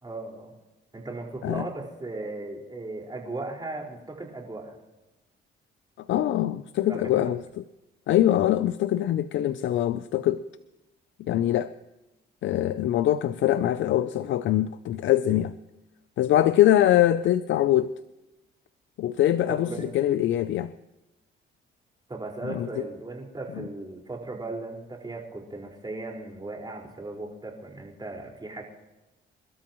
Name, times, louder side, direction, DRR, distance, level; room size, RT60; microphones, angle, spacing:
voice 1, 0.0-0.5 0.9-4.8 6.9-7.3 19.5-19.9 22.1-28.6, right 2 dB, 20° right, -1 dB, 4.9 m, -37 dB
voice 2, 6.1-7.6 8.1-10.4 11.2-11.7 12.4-15.5 16.2-17.9 19.0-20.7 22.5-22.9 23.6-23.7, left 12 dB, 70° left, 13 dB, 0.6 m, -23 dB
28.0 x 12.5 x 3.1 m, 1.0 s
cardioid pair, 90°, 20 cm